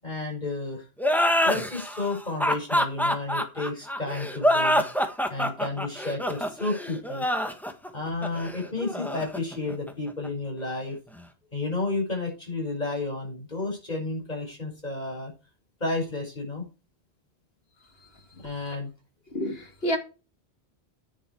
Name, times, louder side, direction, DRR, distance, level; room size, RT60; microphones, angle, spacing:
voice 1, 0.0-0.9 1.4-7.3 7.9-11.0 11.5-15.3 15.8-16.7 18.4-18.9, left 3 dB, 40° left, 6.1 m, -32 dB
sound 1, 1.0-10.3, equal, ahead, 1.4 m, -26 dB
voice 2, 19.3-20.0, equal, 65° left, 2.6 m, -29 dB
10.0 x 8.3 x 4.7 m
omnidirectional pair, 1.1 m